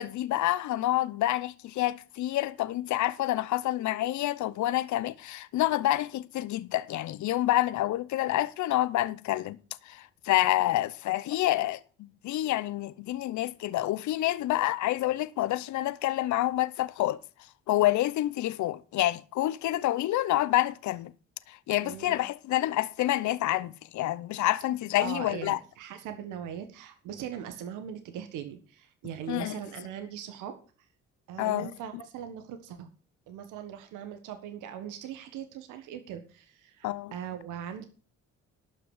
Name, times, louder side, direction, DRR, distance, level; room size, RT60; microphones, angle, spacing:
voice 1, 0.0-9.6 9.9-11.8 12.2-17.2 17.7-21.1 21.5-25.6 29.3-29.5 31.4-31.7 36.8-37.1, left 15 dB, 75° left, 0.8 m, -28 dB
voice 2, 21.8-22.2 25.0-30.6 31.3-32.9 33.3-37.8, right 9 dB, 85° right, 1.5 m, -40 dB
12.0 x 6.0 x 8.0 m
supercardioid pair, 70°, 30 cm